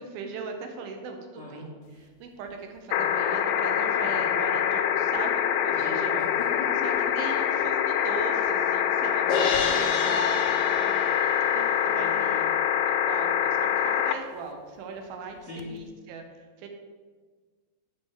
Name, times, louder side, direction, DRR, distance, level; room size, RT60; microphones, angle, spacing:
voice 1, 0.0-1.7 1.9-6.2 6.8-10.3 11.4-12.5 13.1-16.2 16.6-16.7, right 4 dB, 85° right, 4 dB, 2.8 m, -39 dB
voice 2, 1.4-1.7 2.9-3.1 4.0-4.5 5.7-7.1 10.0-11.0 12.0-12.5 15.4-15.7, left 2 dB, 5° left, -6 dB, 1.9 m, -38 dB
sound 1, 2.9-14.2 15.6-15.7, left 9 dB, 90° left, 2.4 m, -25 dB
Crash cymbal, 9.3-11.6, left 5 dB, 65° left, 2.1 m, -29 dB
8.1 x 4.5 x 7.3 m, 1.5 s
omnidirectional pair, 4.1 m